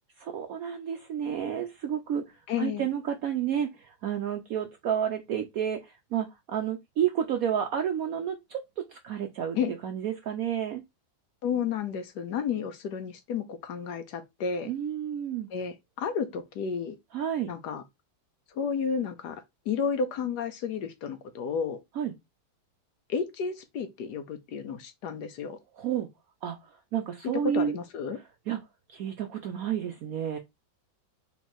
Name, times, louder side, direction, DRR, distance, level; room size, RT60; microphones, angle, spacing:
voice 1, 0.2-2.3 2.6-9.6 9.8-10.8 14.7-15.5 17.1-17.5 22.0-22.1 25.8-26.1 26.4-27.8 28.5-28.6 28.9-30.4, right 9 dB, 75° right, 0.8 m, -30 dB
voice 2, 2.5-2.9 9.6-9.7 11.4-14.7 15.5-17.0 17.5-17.8 18.5-21.8 23.1-25.6 27.4-28.2, left 6 dB, 65° left, 1.1 m, -32 dB
4.0 x 3.0 x 4.3 m
omnidirectional pair, 2.1 m